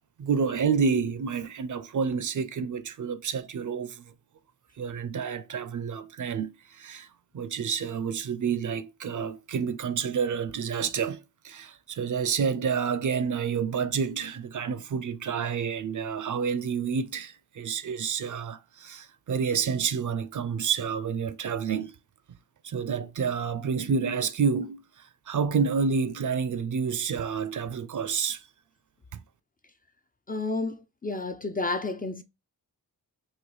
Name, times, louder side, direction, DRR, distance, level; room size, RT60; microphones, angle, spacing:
voice 1, 0.2-4.1 4.8-7.1 7.3-21.9 22.6-28.5, right 6 dB, 50° right, 0.5 m, -29 dB
voice 2, 30.3-30.8 31.0-32.2, left 3 dB, 25° left, 0.4 m, -30 dB
3.2 x 2.5 x 3.8 m
cardioid pair, 45°, 38 cm